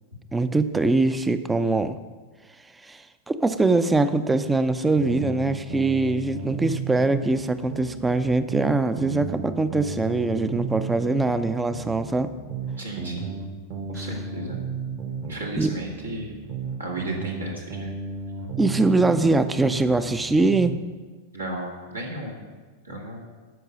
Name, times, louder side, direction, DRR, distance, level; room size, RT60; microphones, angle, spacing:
voice 1, 0.3-2.0 2.8-12.3 15.6-15.7 18.6-20.7, right 3 dB, 10° right, 12 dB, 0.5 m, -22 dB
sound 1, 5.0-7.4 7.7-11.4 11.7-15.4 15.7-19.4 19.7-20.8, right 5 dB, 45° right, 1.3 m, -33 dB
voice 2, 12.8-13.4 13.9-14.6 15.2-16.3 16.8-17.9 21.3-22.5 22.8-23.2, right 1 dB, 75° right, -1 dB, 2.0 m, -34 dB
12.5 x 5.4 x 5.6 m, 1.4 s
figure-of-eight pair, 90°, 0 cm